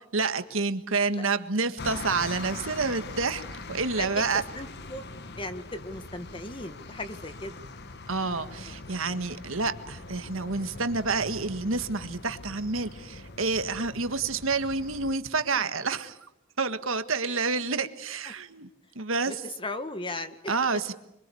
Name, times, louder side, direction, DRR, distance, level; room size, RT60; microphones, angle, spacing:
voice 1, 0.1-3.4 3.7-4.4 8.1-16.2 16.6-18.7 18.9-19.4 20.5-20.9, right 4 dB, 75° right, 10 dB, 1.6 m, -28 dB
sound 1, 1.8-15.2, left 3 dB, 50° left, 1.3 m, -42 dB
voice 2, 4.0-5.0 5.4-7.5 8.6-8.8 15.5-15.7 17.3-17.5 18.2-18.3 19.3-20.8, left 2 dB, 25° left, 9 dB, 1.7 m, -37 dB
26.5 x 24.0 x 8.5 m, 0.84 s
head